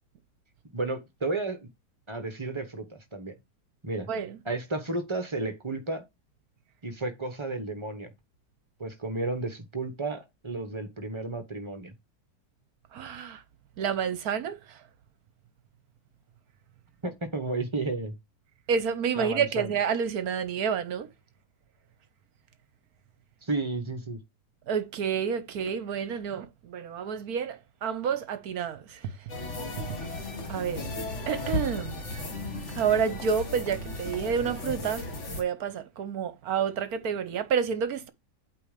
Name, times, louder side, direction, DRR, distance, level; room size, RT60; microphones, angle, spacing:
voice 1, 0.7-1.7 2.1-3.3 3.8-4.1 4.4-6.0 6.8-8.1 8.8-11.9 17.0-18.1 19.1-19.7 23.4-24.2, right 2 dB, 20° right, 0.9 m, -32 dB
voice 2, 4.1-4.4 12.9-13.4 13.8-14.8 18.7-21.1 24.7-29.3 29.8-30.0 30.5-30.8 31.3-32.0 32.7-38.1, right 7 dB, 65° right, 1.2 m, -29 dB
sound 1, 29.3-35.4, left 2 dB, 45° left, 1.7 m, -35 dB
8.5 x 3.0 x 5.1 m
omnidirectional pair, 1.8 m